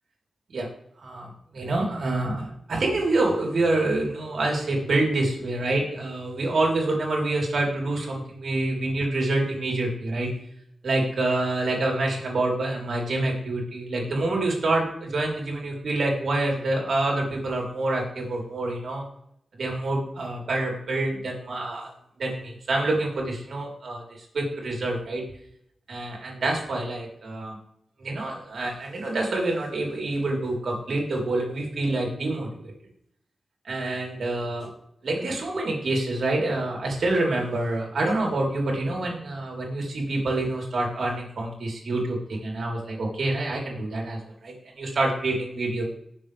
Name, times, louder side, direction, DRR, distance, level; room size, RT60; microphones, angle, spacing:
voice 1, 1.0-10.3 10.8-19.1 19.5-21.9 22.2-25.2 25.9-27.6 28.0-32.7 33.6-34.7 35.0-45.8, right 2 dB, 70° right, -1 dB, 3.8 m, -27 dB
18.5 x 7.3 x 3.4 m, 0.74 s
cardioid pair, 80°, 0 cm